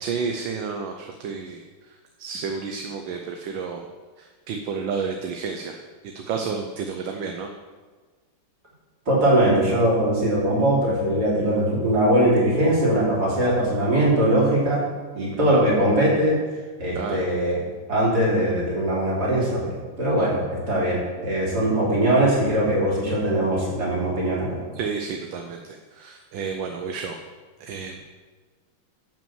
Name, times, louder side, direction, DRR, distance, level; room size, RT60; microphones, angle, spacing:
voice 1, 0.0-3.9 4.2-5.8 6.0-7.5 15.5-15.6 16.9-17.2 24.7-27.2 27.6-28.0, right 5 dB, 75° right, 4 dB, 1.5 m, -31 dB
voice 2, 9.1-14.8 15.1-16.4 16.8-17.6 17.9-24.6, right 1 dB, 50° right, -6 dB, 3.7 m, -21 dB
11.0 x 5.6 x 7.3 m, 1.4 s
omnidirectional pair, 2.2 m